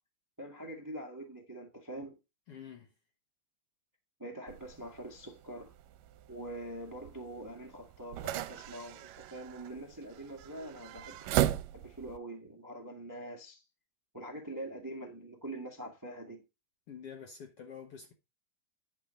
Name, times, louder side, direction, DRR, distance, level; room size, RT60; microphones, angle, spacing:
voice 1, 0.4-2.1 4.2-5.7 6.3-13.6 14.1-16.4, right 1 dB, 30° right, 0.3 m, -44 dB
voice 2, 2.5-2.9 16.9-18.1, left 7 dB, 65° left, 1.5 m, -47 dB
sound 1, 4.5-12.2, right 13 dB, 80° right, 2.2 m, -38 dB
10.5 x 4.6 x 5.3 m
omnidirectional pair, 4.0 m